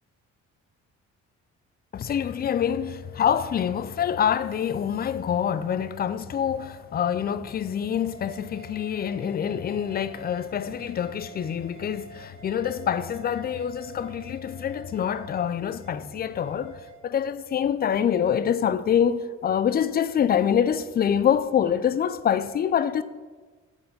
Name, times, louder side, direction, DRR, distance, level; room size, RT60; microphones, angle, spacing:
voice 1, 1.9-23.0, left 8 dB, 30° left, 0.4 m, -26 dB
sound 1, 8.0-17.0, right 6 dB, 90° right, 2.1 m, -48 dB
7.7 x 4.5 x 5.4 m
cardioid pair, 90°, 30 cm